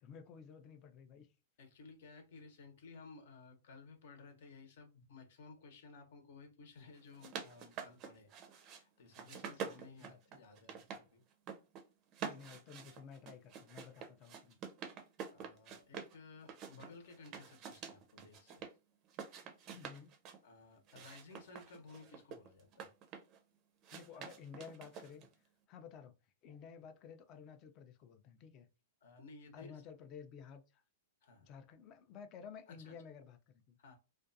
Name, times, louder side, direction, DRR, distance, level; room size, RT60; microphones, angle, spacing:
voice 1, 0.0-1.3 10.0-10.4 12.2-14.6 19.7-20.1 23.9-25.3 25.7-26.2 26.4-28.7 29.5-30.8 31.4-33.8, left 6 dB, 30° left, 0.5 m, -53 dB
voice 2, 1.6-8.3 8.6-11.2 15.3-18.6 20.4-22.9 24.1-24.3 29.0-29.8 31.2-31.5 32.7-32.9 33.8-34.0, left 4 dB, 65° left, 0.9 m, -57 dB
sound 1, 7.0-8.8 9.1-11.0 11.3-11.8 12.1-16.1 16.5-18.7 19.1-20.4 20.9-23.4 23.8-25.3, right 7 dB, 30° right, 0.5 m, -47 dB
2.4 x 2.3 x 2.6 m
hypercardioid pair, 145°, 0 cm